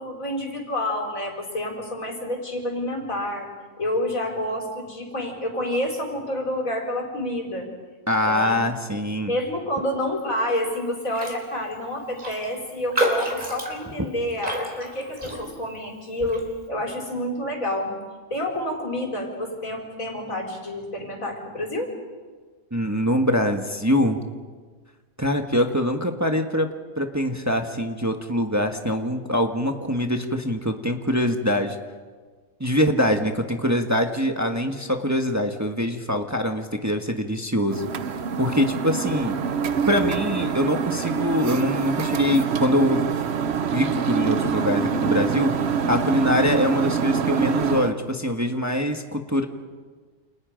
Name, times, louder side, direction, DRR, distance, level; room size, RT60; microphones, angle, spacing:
voice 1, 0.0-3.5 3.8-7.7 8.3-8.6 9.3-17.9 18.3-21.9, left 1 dB, 85° left, 1 dB, 5.1 m, -28 dB
voice 2, 8.1-9.3 22.7-24.2 25.2-26.7 27.0-31.8 32.6-37.9 38.4-39.4 39.9-43.0 43.7-45.5 45.9-49.5, equal, 15° right, 4 dB, 1.4 m, -23 dB
Raindrop, 11.1-11.4 11.7-11.8 12.2-15.8 16.2-16.5, right 1 dB, 35° right, 4.1 m, -29 dB
sound 1, 37.7-47.9, right 6 dB, 55° right, 1.1 m, -25 dB
29.0 x 29.0 x 5.2 m, 1.5 s
omnidirectional pair, 1.4 m